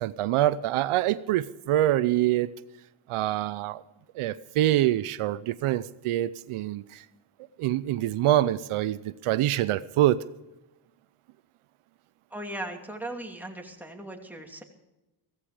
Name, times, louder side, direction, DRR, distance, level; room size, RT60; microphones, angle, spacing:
voice 1, 0.0-2.5 3.1-3.8 4.1-7.1 7.6-10.2, right 13 dB, 85° right, 16 dB, 0.7 m, -25 dB
voice 2, 12.3-14.6, right 1 dB, 5° right, 2 dB, 2.6 m, -38 dB
16.0 x 14.5 x 4.9 m, 0.97 s
cardioid pair, 95°, 49 cm